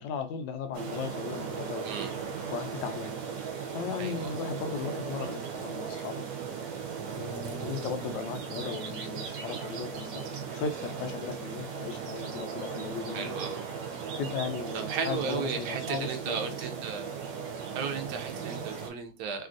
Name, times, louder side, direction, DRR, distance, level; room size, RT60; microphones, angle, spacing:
voice 1, 0.0-1.9 2.5-3.2 3.7-6.3 7.2-13.4 14.2-16.7, left 6 dB, 80° left, 1.3 m, -37 dB
sound 1, 0.7-18.9, right 6 dB, 90° right, 1.3 m, -37 dB
voice 2, 13.1-13.6 14.7-17.1 17.7-19.5, right 6 dB, 70° right, 1.1 m, -35 dB
3.4 x 2.3 x 2.5 m
omnidirectional pair, 2.0 m